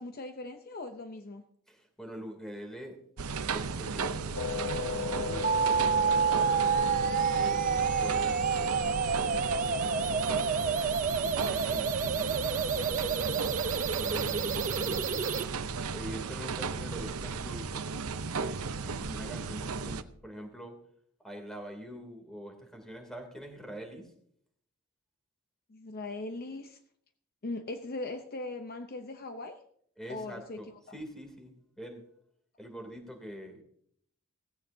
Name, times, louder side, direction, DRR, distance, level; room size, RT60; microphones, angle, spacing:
voice 1, 0.0-1.4 25.7-26.8 27.4-29.6 30.1-30.6, left 2 dB, 45° left, 7 dB, 0.7 m, -39 dB
voice 2, 1.7-3.0 3.5-6.7 7.3-10.6 11.2-13.4 13.9-15.4 15.9-17.9 18.4-20.8 21.2-24.1 30.0-32.1 32.6-33.6, equal, ahead, 3 dB, 2.9 m, -45 dB
sound 1, 3.2-20.0, right 4 dB, 80° right, 0.7 m, -35 dB
sound 2, 4.4-10.9, left 4 dB, 85° left, 0.7 m, -37 dB
sound 3, 5.4-15.4, right 6 dB, 35° right, 0.6 m, -29 dB
17.0 x 16.0 x 2.7 m, 0.66 s
head